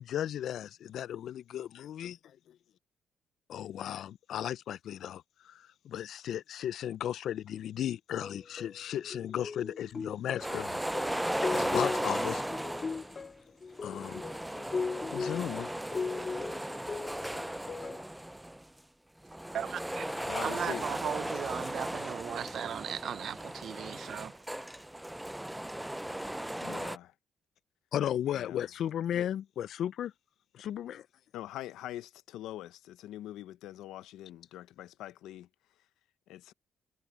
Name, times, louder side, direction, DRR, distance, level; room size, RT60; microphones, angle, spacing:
voice 1, 0.0-2.2 2.5-2.6 3.5-11.1 11.5-12.4 13.8-14.2 15.1-15.7 27.9-30.1 30.5-31.1, left 10 dB, 70° left, 0.4 m, -35 dB
sound 1, 8.2-18.1, left 4 dB, 35° left, 3.2 m, -38 dB
sound 2, 10.4-13.2 13.8-18.6 19.2-27.0, right 1 dB, 5° right, 0.4 m, -36 dB
voice 2, 19.5-20.1 20.4-24.3, right 9 dB, 65° right, 0.6 m, -37 dB
voice 3, 20.2-20.9 21.4-21.7 26.6-27.1 28.3-28.6 29.1-29.3 31.3-35.5 36.3-36.5, left 13 dB, 85° left, 0.8 m, -44 dB
cardioid pair, 85°, 0 cm